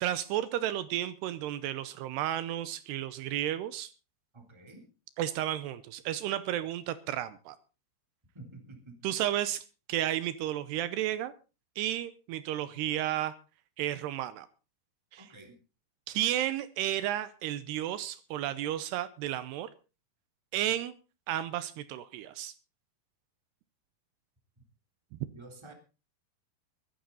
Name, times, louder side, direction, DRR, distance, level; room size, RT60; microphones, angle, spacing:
voice 1, 0.0-3.9 5.2-7.6 9.0-11.3 11.8-13.3 13.8-14.5 15.1-15.3 16.1-19.7 20.5-20.9 21.3-22.5 25.1-25.2, right 12 dB, 80° right, 14 dB, 2.8 m, -32 dB
voice 2, 4.3-4.9 8.3-9.1 15.2-15.5 25.3-25.7, right 2 dB, 5° right, 4 dB, 2.9 m, -50 dB
22.5 x 10.5 x 4.0 m, 0.33 s
omnidirectional pair, 4.9 m